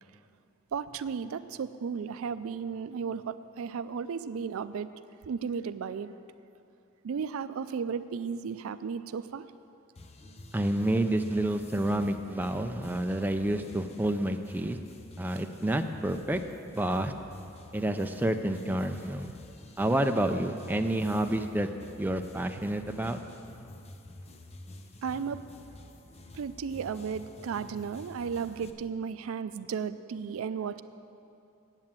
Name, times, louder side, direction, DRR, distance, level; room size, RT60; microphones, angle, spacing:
voice 1, 0.7-4.9 5.3-6.1 7.0-9.5 25.0-25.4 26.3-30.8, right 6 dB, 80° right, 13 dB, 0.4 m, -34 dB
sound 1, 9.9-28.7, left 1 dB, 30° left, 0.6 m, -49 dB
voice 2, 10.5-14.8 15.2-17.1 17.7-19.3 19.8-21.7 22.0-23.2, right 1 dB, 10° right, 6 dB, 0.4 m, -29 dB
9.0 x 8.5 x 7.4 m, 2.6 s
head